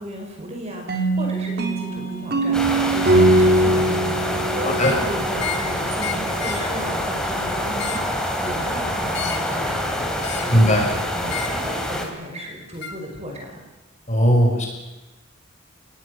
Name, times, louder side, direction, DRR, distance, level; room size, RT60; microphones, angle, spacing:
voice 1, 0.0-13.6, equal, 30° right, 2 dB, 5.2 m, -35 dB
sound 1, 0.9-5.8, right 1 dB, 50° right, 3.0 m, -21 dB
sound 2, 2.5-12.1, equal, 5° left, 3.3 m, -26 dB
sound 3, 4.7-5.0 5.4-5.7 6.0-6.7 7.6-8.1 9.1-9.5 10.2-10.6 11.2-11.6 12.8-13.0, left 8 dB, 55° left, 2.2 m, -32 dB
voice 2, 10.5-10.8 14.1-14.7, equal, 35° left, 1 dB, 5.7 m, -17 dB
26.5 x 19.0 x 6.7 m, 1.1 s
head